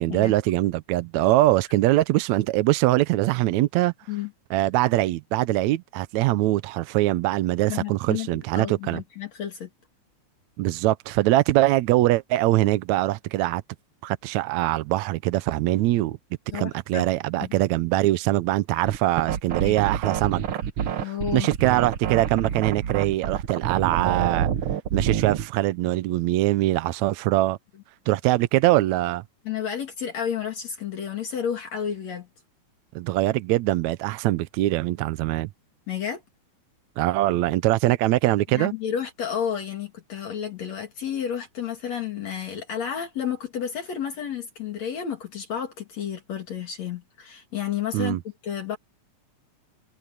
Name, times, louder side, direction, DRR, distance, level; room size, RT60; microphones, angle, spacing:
voice 1, 0.0-3.9 4.5-9.0 10.6-13.6 14.0-16.2 16.5-20.4 21.0-24.5 24.9-27.6 28.1-29.2 33.0-35.5 37.0-38.7 47.9-48.2, right 16 dB, 80° right, 1.9 m, -22 dB
voice 2, 7.7-9.7 16.5-17.1 17.4-17.6 19.6-19.8 21.0-21.5 29.5-32.3 35.9-36.2 38.5-48.2 48.4-48.8, left 8 dB, 60° left, 3.6 m, -31 dB
sound 1, 18.9-25.5, right 9 dB, 60° right, 1.6 m, -27 dB
omnidirectional pair, 3.4 m